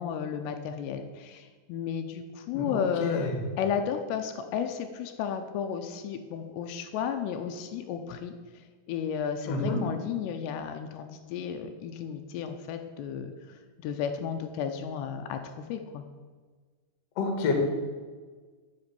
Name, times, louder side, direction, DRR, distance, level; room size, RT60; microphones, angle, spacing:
voice 1, 0.0-3.3 3.6-8.3 8.9-13.3 13.8-16.0, left 7 dB, 85° left, 6 dB, 2.7 m, -33 dB
voice 2, 2.5-3.3 9.5-9.8 17.2-17.5, left 3 dB, 55° left, 2 dB, 1.8 m, -29 dB
8.0 x 5.9 x 6.8 m, 1.5 s
omnidirectional pair, 5.0 m